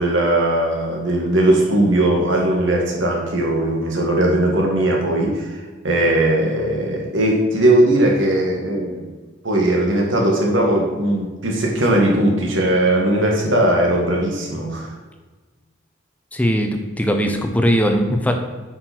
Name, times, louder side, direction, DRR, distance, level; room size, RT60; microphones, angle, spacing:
voice 1, 0.0-5.6 5.8-9.0 9.4-14.9, right 1 dB, 80° right, -1 dB, 2.1 m, -18 dB
voice 2, 16.3-18.4, equal, 10° left, 4 dB, 0.7 m, -19 dB
9.1 x 5.9 x 4.4 m, 1.3 s
head